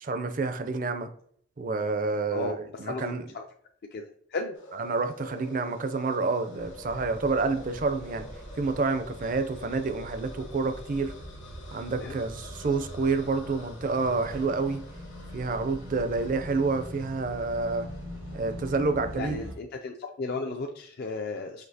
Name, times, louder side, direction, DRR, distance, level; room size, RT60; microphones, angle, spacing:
voice 1, 0.0-1.1 1.6-3.2 4.7-8.3 8.5-11.1 11.7-14.8 15.3-17.9 18.3-19.4, right 3 dB, 40° right, 9 dB, 0.4 m, -28 dB
voice 2, 2.8-3.4 3.9-4.6 12.0-12.2 19.2-21.6, left 3 dB, 50° left, 3 dB, 0.4 m, -35 dB
sound 1, 4.5-18.8, left 2 dB, 75° left, 1.3 m, -48 dB
sound 2, 6.6-19.6, equal, 90° right, 1.2 m, -43 dB
5.9 x 2.8 x 2.7 m, 0.63 s
head